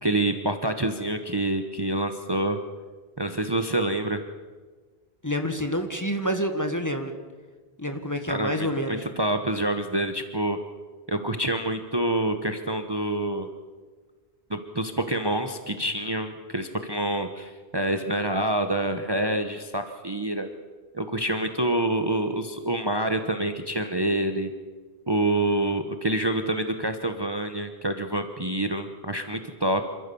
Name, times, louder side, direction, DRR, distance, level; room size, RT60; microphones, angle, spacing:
voice 1, 0.0-2.6 3.2-4.2 8.3-10.6 11.1-13.5 14.5-20.5 20.9-24.5 25.1-29.9, right 1 dB, 25° right, 7 dB, 1.0 m, -27 dB
voice 2, 5.2-7.1 7.8-9.0, equal, 20° left, 6 dB, 1.5 m, -28 dB
27.0 x 13.5 x 7.0 m, 1.4 s
omnidirectional pair, 1.1 m